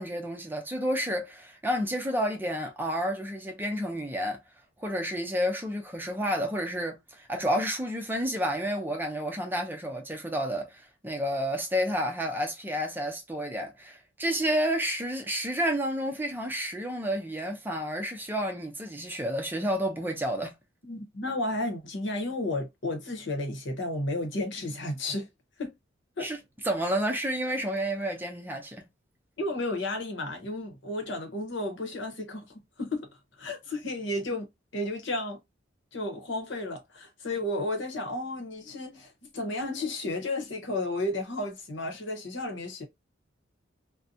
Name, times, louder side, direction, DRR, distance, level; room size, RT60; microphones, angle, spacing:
voice 1, 0.0-4.4 4.8-20.5 26.2-26.4 26.6-28.8, equal, 10° right, 0.6 m, -30 dB
voice 2, 20.9-25.3 25.6-25.7 26.2-26.3 29.4-32.5 32.8-33.1 33.4-34.5 34.7-35.4 35.9-42.8, left 2 dB, 65° left, 0.9 m, -32 dB
2.6 x 2.1 x 2.7 m
head